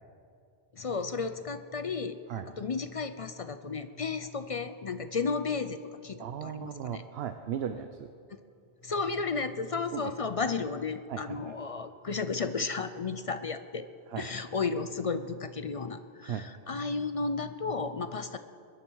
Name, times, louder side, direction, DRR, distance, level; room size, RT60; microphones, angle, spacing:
voice 1, 0.7-7.0 8.8-13.9 14.2-18.4, left 4 dB, 45° left, 10 dB, 0.5 m, -33 dB
voice 2, 6.2-8.1 9.9-10.1 11.1-11.4 14.1-14.3 16.2-16.5, right 9 dB, 70° right, 9 dB, 0.9 m, -36 dB
21.0 x 11.0 x 4.6 m, 2.3 s
omnidirectional pair, 1.1 m